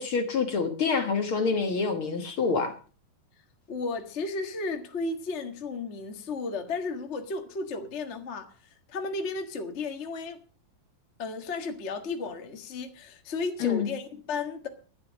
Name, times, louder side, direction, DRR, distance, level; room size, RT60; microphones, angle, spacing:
voice 1, 0.0-2.7 13.6-13.9, left 5 dB, 50° left, 1.8 m, -27 dB
voice 2, 3.7-8.5 8.9-10.4 11.2-14.7, left 3 dB, 35° left, 1.1 m, -34 dB
11.5 x 11.0 x 6.2 m
omnidirectional pair, 3.8 m